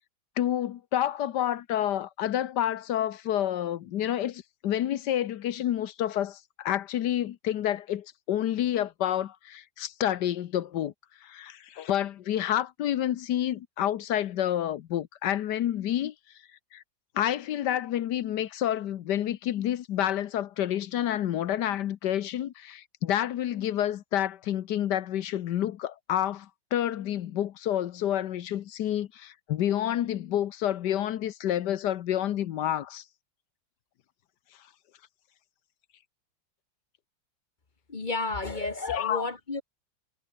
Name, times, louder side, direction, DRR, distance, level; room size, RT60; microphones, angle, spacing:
voice 1, 0.4-10.9 11.2-16.1 16.7-16.8 17.1-33.0 38.9-39.2, left 11 dB, 65° left, 1.4 m, -29 dB
voice 2, 37.9-39.6, left 3 dB, 25° left, 1.5 m, -32 dB
omnidirectional pair, 2.0 m